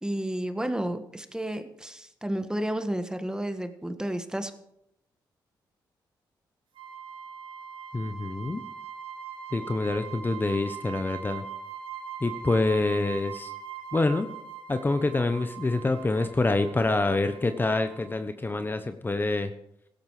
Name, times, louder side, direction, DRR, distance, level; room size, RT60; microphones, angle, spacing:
voice 1, 0.0-4.5, right 1 dB, 10° right, 8 dB, 1.6 m, -31 dB
sound 1, 6.8-18.2, right 7 dB, 75° right, 2.5 m, -41 dB
voice 2, 7.9-8.6 9.5-11.4 12.2-13.5 13.9-14.3 14.7-19.5, left 2 dB, 25° left, 9 dB, 1.0 m, -26 dB
16.5 x 12.5 x 4.9 m, 0.76 s
cardioid pair, 70°, 8 cm